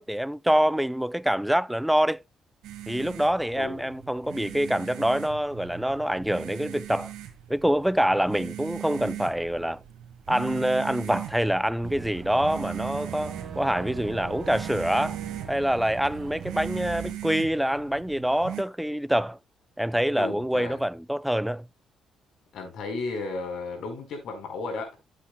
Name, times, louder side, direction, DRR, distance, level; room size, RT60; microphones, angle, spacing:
voice 1, 0.0-2.2 2.9-7.1 7.5-9.8 10.3-15.2 15.5-19.4 19.8-21.7, equal, 5° right, 0.4 m, -25 dB
sound 1, 2.6-18.6, right 12 dB, 90° right, 1.7 m, -40 dB
voice 2, 3.5-3.9 20.2-20.8 22.5-25.0, left 3 dB, 70° left, 4.3 m, -34 dB
Boat Water vehicle / Engine, 11.8-17.1, right 7 dB, 60° right, 1.8 m, -39 dB
11.5 x 8.3 x 2.2 m
cardioid pair, 90°, 0 cm